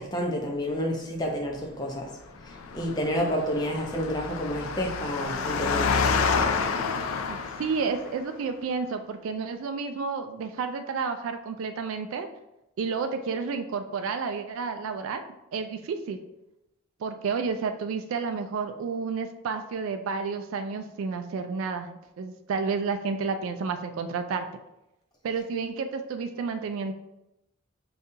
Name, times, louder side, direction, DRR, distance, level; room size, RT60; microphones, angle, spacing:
voice 1, 0.0-6.4, equal, 20° left, 0 dB, 0.5 m, -30 dB
Engine, 2.5-8.1, left 5 dB, 75° left, 0.3 m, -28 dB
voice 2, 7.3-12.3 12.8-15.2 15.5-16.2 17.0-24.5 25.2-26.9, right 5 dB, 75° right, 7 dB, 0.3 m, -31 dB
5.1 x 2.3 x 2.7 m, 0.90 s
head